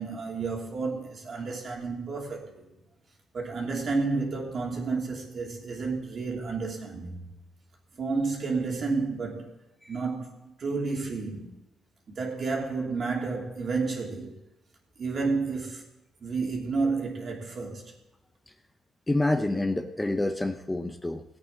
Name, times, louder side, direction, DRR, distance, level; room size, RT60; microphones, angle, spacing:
voice 1, 0.0-2.7 3.3-7.2 7.9-9.5 9.9-11.5 12.1-14.3 15.0-15.8 16.2-17.9, right 4 dB, 50° right, 3.1 m, -31 dB
voice 2, 19.1-21.2, left 2 dB, 15° left, 0.8 m, -27 dB
17.5 x 8.6 x 4.0 m
cardioid pair, 90°, 0 cm